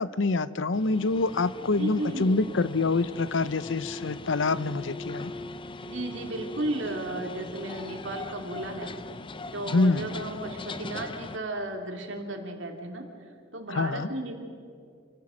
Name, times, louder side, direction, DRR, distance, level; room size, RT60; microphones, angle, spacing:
voice 1, 0.0-5.3 9.7-10.0 13.7-14.1, left 3 dB, 80° left, 16 dB, 0.7 m, -26 dB
sound 1, 0.7-11.4, left 2 dB, 25° left, 0.7 m, -40 dB
voice 2, 1.8-2.5 5.9-8.9 9.5-13.1 13.5-14.4, right 1 dB, 80° right, 3 dB, 2.7 m, -34 dB
27.0 x 15.5 x 6.4 m, 2.4 s
head